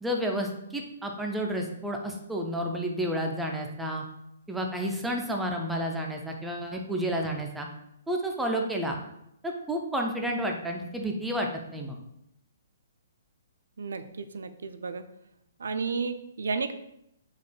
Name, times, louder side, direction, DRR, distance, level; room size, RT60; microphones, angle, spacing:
voice 1, 0.0-4.0 4.5-7.7 8.1-9.0 9.4-12.0, equal, 5° right, 1 dB, 0.3 m, -31 dB
voice 2, 13.8-15.0 15.6-16.7, right 4 dB, 90° right, 10 dB, 0.3 m, -32 dB
4.0 x 2.3 x 3.2 m, 0.79 s
hypercardioid pair, 165°, 0 cm